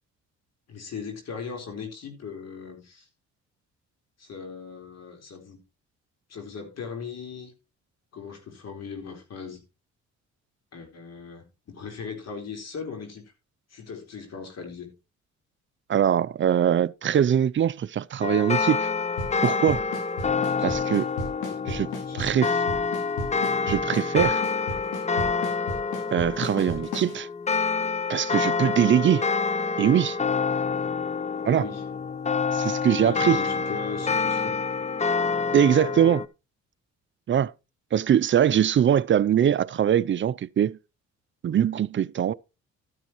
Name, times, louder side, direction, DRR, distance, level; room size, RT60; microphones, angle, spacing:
voice 1, 0.7-3.1 4.2-5.6 6.3-7.5 8.1-9.6 10.7-13.3 13.7-14.9 20.4-20.8 21.5-22.8 31.4-31.8 33.0-34.6, left 5 dB, 55° left, 4.2 m, -39 dB
voice 2, 15.9-18.9 19.4-19.8 20.6-21.1 21.7-21.9 22.1-22.5 23.7-24.4 26.1-27.3 28.1-29.3 29.8-30.2 31.4-31.7 32.5-33.4 35.5-36.2 37.3-37.5 37.9-40.8 41.4-42.3, right 9 dB, 40° right, 0.5 m, -22 dB
sound 1, 18.2-36.3, left 5 dB, 25° left, 0.6 m, -27 dB
Drum kit / Snare drum / Bass drum, 19.2-27.1, left 2 dB, 85° left, 5.6 m, -33 dB
13.0 x 9.4 x 3.1 m
cardioid pair, 90°, 30 cm